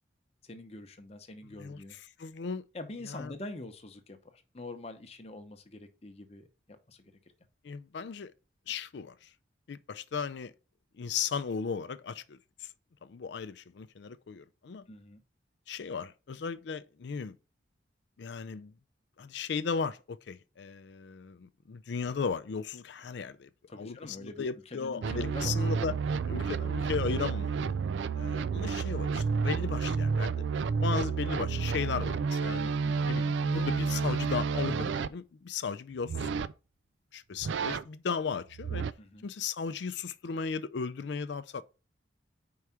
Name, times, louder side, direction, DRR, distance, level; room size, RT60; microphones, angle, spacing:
voice 1, 0.4-2.0 2.7-7.1 14.9-15.2 23.7-25.5 32.8-33.1 39.0-39.3, left 2 dB, 35° left, 0.8 m, -45 dB
voice 2, 1.6-2.6 3.1-3.3 7.6-8.3 8.7-9.3 9.7-10.5 11.0-12.7 13.0-14.8 15.7-17.4 18.2-18.7 19.2-23.5 23.8-25.9 26.2-27.6 28.1-32.7 33.1-36.3 37.1-38.8 39.2-41.6, left 5 dB, 70° left, 0.4 m, -36 dB
sound 1, 25.0-35.1 36.1-36.5 37.4-37.8 38.5-38.9, right 5 dB, 75° right, 0.3 m, -30 dB
4.8 x 4.7 x 5.6 m
head